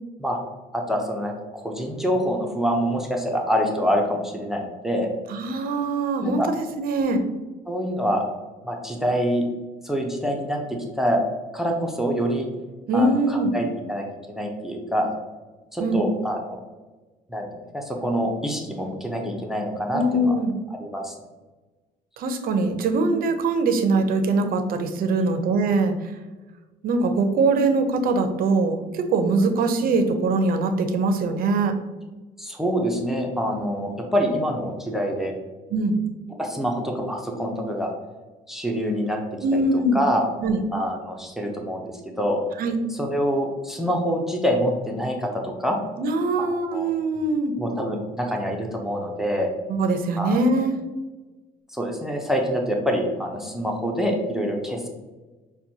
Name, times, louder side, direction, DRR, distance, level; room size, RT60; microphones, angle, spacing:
voice 1, 0.7-5.1 6.2-6.5 7.7-8.2 8.6-9.4 9.8-11.2 11.5-12.5 12.9-15.1 15.7-16.6 17.3-17.5 17.7-20.4 20.7-21.1 32.4-35.3 36.4-37.9 38.5-39.2 39.5-39.6 39.9-40.3 40.7-41.8 42.2-42.4 42.9-45.8 46.4-46.9 47.6-49.5 50.2-50.4 51.7-54.9, equal, ahead, 1 dB, 0.5 m, -26 dB
voice 2, 5.3-6.4 6.8-7.2 12.9-13.6 15.8-16.0 19.9-20.6 22.2-26.1 26.8-31.7 35.7-36.0 39.4-40.0 40.4-40.6 42.6-42.8 46.0-47.5 49.7-50.8, right 2 dB, 60° right, 7 dB, 0.6 m, -22 dB
5.9 x 2.2 x 2.7 m, 1.2 s
cardioid pair, 110°, 17 cm